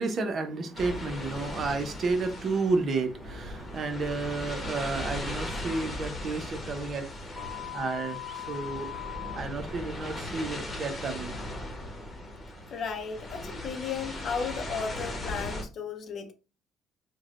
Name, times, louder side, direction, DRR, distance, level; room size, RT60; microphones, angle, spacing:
voice 1, 0.0-7.1 7.7-8.9 9.3-11.4, right 3 dB, 50° right, 0.6 m, -31 dB
sound 1, 0.7-15.6, left 1 dB, 35° left, 1.0 m, -38 dB
sound 2, 7.4-9.4, left 14 dB, 10° right, 0.6 m, -39 dB
voice 2, 12.7-16.3, left 6 dB, 60° left, 0.6 m, -34 dB
3.3 x 2.2 x 2.4 m
supercardioid pair, 65°, 0 cm